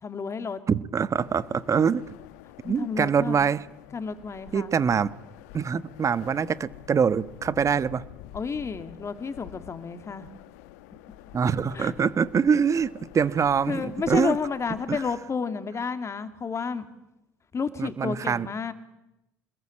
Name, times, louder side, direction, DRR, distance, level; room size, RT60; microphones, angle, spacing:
voice 1, 0.0-0.6 2.7-3.5 3.9-4.7 8.3-10.3 11.7-11.9 13.7-16.9 17.5-18.7, left 5 dB, 35° left, 10 dB, 2.8 m, -31 dB
voice 2, 0.7-2.0 2.6-3.6 4.5-5.1 5.5-8.0 11.3-14.4 14.9-15.0 17.8-18.5, right 6 dB, 35° right, 16 dB, 1.3 m, -24 dB
sound 1, 1.1-15.2, left 14 dB, 75° left, 1.4 m, -48 dB
26.5 x 21.0 x 8.8 m, 0.89 s
hypercardioid pair, 65°, 9 cm